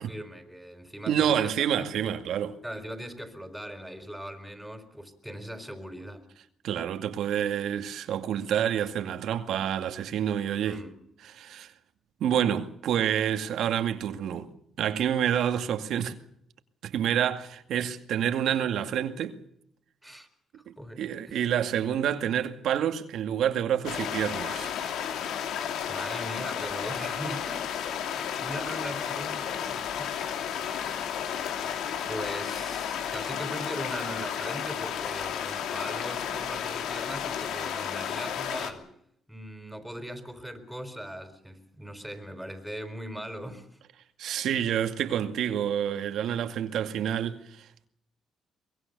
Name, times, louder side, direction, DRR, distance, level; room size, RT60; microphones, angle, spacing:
voice 1, 0.0-2.1 2.6-6.3 10.6-10.9 20.0-20.3 20.8-21.4 25.9-30.3 32.0-38.9 39.3-43.7, equal, 5° right, 4.7 m, -40 dB
voice 2, 1.1-2.6 6.6-10.8 11.3-11.7 12.2-14.5 14.8-16.1 16.8-19.4 20.7-24.7 44.2-47.9, right 9 dB, 75° right, 2.1 m, -28 dB
sound 1, 23.8-38.7, left 8 dB, 80° left, 2.8 m, -32 dB
24.0 x 21.5 x 6.9 m
cardioid pair, 90°, 0 cm